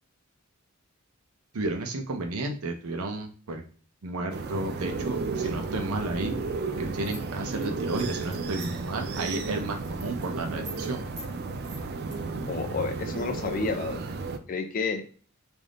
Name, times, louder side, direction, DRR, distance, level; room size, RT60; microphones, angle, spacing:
voice 1, 1.5-3.6 4.0-6.3 6.7-11.0, right 2 dB, 85° right, 4 dB, 0.6 m, -32 dB
sound 1, 4.3-14.4, right 3 dB, 50° right, 0.4 m, -33 dB
sound 2, 7.0-8.9 9.3-9.5 9.8-10.3 10.6-10.9 11.2-11.3 11.6-12.2, right 1 dB, 35° right, 0.9 m, -44 dB
voice 2, 12.5-14.0 14.5-15.0, left 4 dB, 40° left, 5 dB, 0.4 m, -30 dB
3.5 x 2.5 x 3.7 m, 0.42 s
head